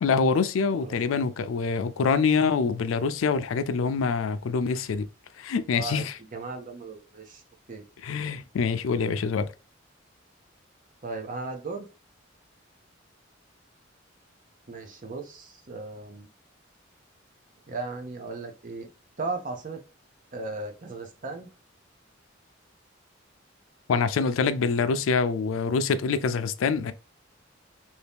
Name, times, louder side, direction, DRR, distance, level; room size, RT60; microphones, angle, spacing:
voice 1, 0.0-5.1 5.4-6.1 8.0-9.5 23.9-26.9, left 5 dB, 85° left, 0.4 m, -25 dB
voice 2, 0.8-1.2 5.7-7.4 7.7-7.8 11.0-11.9 14.7-16.3 17.7-18.9 19.2-19.8 20.3-21.5, right 3 dB, 40° right, 0.6 m, -36 dB
2.9 x 2.7 x 3.4 m
head